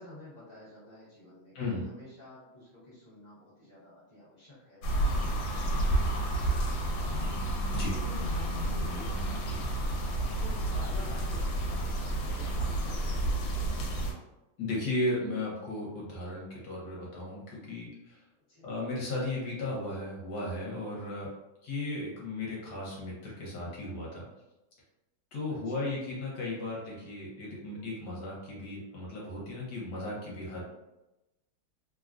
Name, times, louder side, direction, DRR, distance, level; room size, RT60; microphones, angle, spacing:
voice 1, 0.0-7.1 7.9-9.7 10.2-13.5 18.5-18.7 25.6-25.8, left 1 dB, 35° left, -9 dB, 0.7 m, -50 dB
sound 1, 4.8-14.1, right 1 dB, 80° left, 1.3 m, -30 dB
voice 2, 14.6-18.2 18.6-21.3 21.6-24.2 25.3-30.6, left 2 dB, 60° left, -5 dB, 1.3 m, -35 dB
3.4 x 2.2 x 2.4 m, 0.98 s
omnidirectional pair, 2.2 m